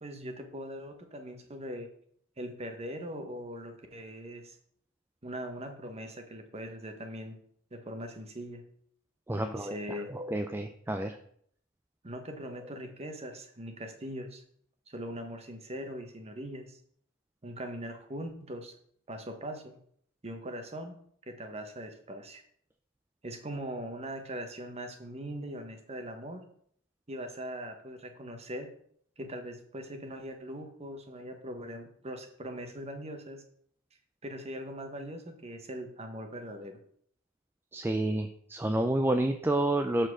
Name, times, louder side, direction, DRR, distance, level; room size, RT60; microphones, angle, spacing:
voice 1, 0.0-1.9 2.4-4.6 5.2-7.4 7.7-8.6 9.3-10.1 12.0-14.4 14.9-16.8 17.4-18.7 19.1-19.8 20.2-20.9 21.3-22.4 23.2-26.4 27.1-28.7 29.2-33.4 34.2-36.8, equal, 30° right, 5 dB, 1.2 m, -41 dB
voice 2, 9.3-11.2 37.7-40.1, right 1 dB, 10° right, 6 dB, 0.4 m, -29 dB
7.4 x 4.4 x 6.1 m, 0.63 s
head